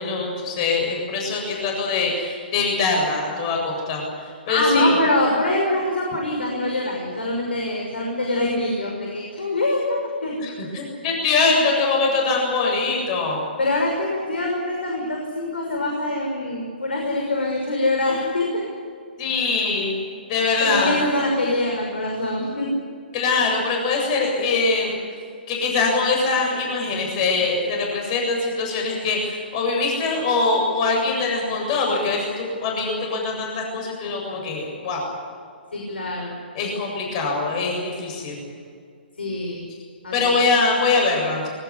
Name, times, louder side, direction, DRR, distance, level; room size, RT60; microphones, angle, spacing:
voice 1, 0.0-4.9 10.4-13.4 19.2-20.0 20.3-21.0 23.1-25.0 25.5-35.1 36.5-38.4 40.1-41.5, left 3 dB, 40° left, 0 dB, 7.8 m, -23 dB
voice 2, 4.5-10.3 13.6-18.6 20.3-22.7 35.7-36.4 37.4-37.5 39.2-39.7 40.0-40.3, left 1 dB, 80° left, 0 dB, 6.1 m, -24 dB
22.5 x 18.5 x 9.9 m, 2.2 s
figure-of-eight pair, 130°, 6 cm